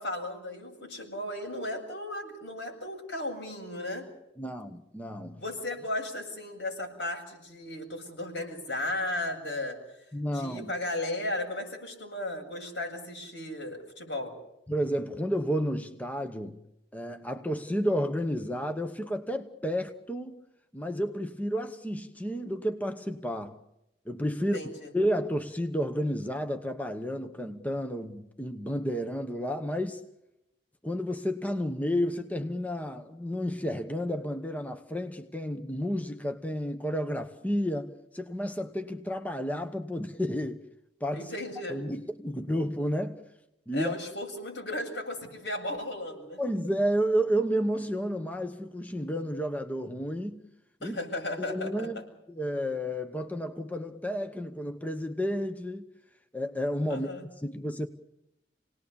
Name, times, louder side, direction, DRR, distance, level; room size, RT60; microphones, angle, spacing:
voice 1, 0.0-4.1 5.4-10.0 10.3-14.3 24.4-24.9 41.1-41.8 43.7-46.4 50.8-51.9 56.9-57.2, left 1 dB, 85° left, 7.4 m, -35 dB
voice 2, 4.4-5.4 10.1-10.7 14.7-16.6 16.9-20.4 20.7-23.6 24.1-24.6 24.9-30.0 30.8-40.6 41.0-41.3 41.7-43.2 43.7-43.9 46.4-50.4 50.8-51.0 51.5-52.0 52.3-55.9 56.3-57.1 57.4-57.9, equal, 10° left, 1.0 m, -31 dB
29.0 x 19.0 x 7.0 m
head